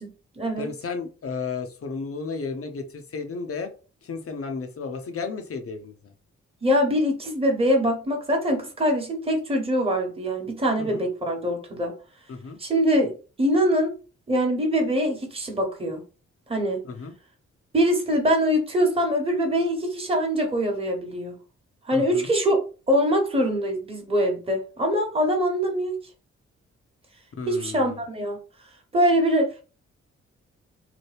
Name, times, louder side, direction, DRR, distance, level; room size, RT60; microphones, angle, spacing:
voice 1, 0.0-0.7 6.6-11.9 12.6-13.1 13.4-13.9 14.3-16.0 16.5-16.8 17.7-21.4 21.8-22.6 22.9-26.0 27.5-28.4 28.9-29.6, equal, 20° right, 1 dB, 1.2 m, -23 dB
voice 2, 0.6-3.7 4.0-6.1 10.8-11.0 12.3-12.6 16.8-17.1 21.9-22.3 27.4-28.0, left 4 dB, 50° left, 6 dB, 0.8 m, -33 dB
2.9 x 2.2 x 3.3 m, 0.35 s
supercardioid pair, 50°, 30 cm